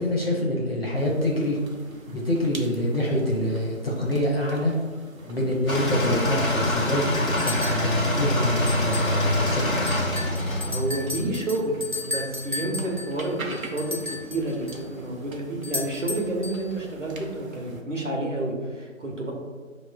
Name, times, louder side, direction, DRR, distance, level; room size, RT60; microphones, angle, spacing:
voice 1, 0.0-1.6 2.1-4.7 5.2-9.9, left 1 dB, 50° left, -3 dB, 0.8 m, -26 dB
sound 1, 0.9-17.8, right 2 dB, 90° right, 0.8 m, -45 dB
sound 2, 5.7-11.3, left 1 dB, 85° left, 1.1 m, -25 dB
sound 3, 7.4-7.9 8.7-9.2 9.5-9.6 9.9-14.8 15.6-16.7, left 2 dB, 40° right, 0.5 m, -34 dB
voice 2, 10.7-11.7 12.0-19.3, right 1 dB, 65° right, -1 dB, 1.1 m, -29 dB
5.2 x 3.1 x 2.2 m, 1.4 s
figure-of-eight pair, 170°, 40 cm